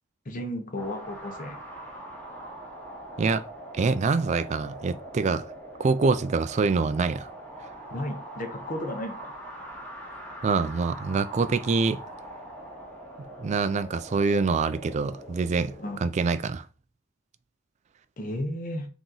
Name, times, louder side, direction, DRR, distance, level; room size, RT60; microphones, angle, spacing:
voice 1, 0.3-1.6 7.9-9.2 15.8-16.0 18.2-18.9, left 1 dB, 45° left, 0.8 m, -33 dB
sound 1, 0.8-16.0, right 1 dB, 10° left, 1.1 m, -42 dB
voice 2, 3.7-5.5 5.8-7.3 10.4-12.0 13.2-15.7 16.0-16.6, right 4 dB, 35° right, 0.3 m, -25 dB
3.8 x 2.9 x 3.8 m
head